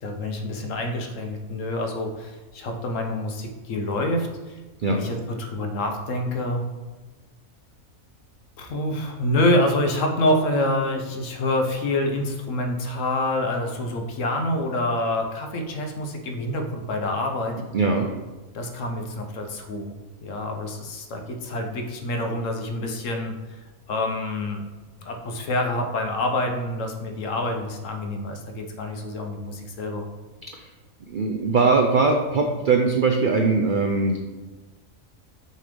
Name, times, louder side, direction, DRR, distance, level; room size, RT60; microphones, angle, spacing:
voice 1, 0.0-4.5 4.9-6.6 8.6-17.5 18.5-19.9 20.2-23.3 23.9-24.6 25.0-30.0, left 1 dB, 70° left, 3 dB, 1.1 m, -27 dB
voice 2, 17.7-18.1 30.5-30.7 31.1-34.2, right 4 dB, 70° right, 3 dB, 0.5 m, -21 dB
6.5 x 3.3 x 5.2 m, 1.2 s
omnidirectional pair, 1.4 m